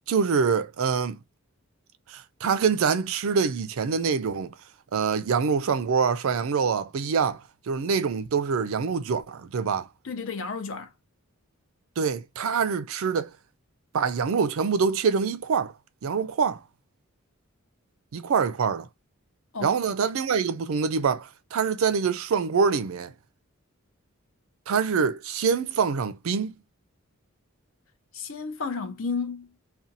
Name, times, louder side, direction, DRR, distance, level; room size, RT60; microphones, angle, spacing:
voice 1, 0.1-1.2 2.1-4.5 4.9-9.9 12.0-13.3 13.9-15.7 16.0-16.6 18.1-18.9 19.6-23.1 24.7-26.6, right 5 dB, 70° right, 0.4 m, -25 dB
voice 2, 10.0-10.9 19.5-19.8 28.1-29.5, left 4 dB, 60° left, 0.6 m, -32 dB
2.5 x 2.3 x 2.6 m
head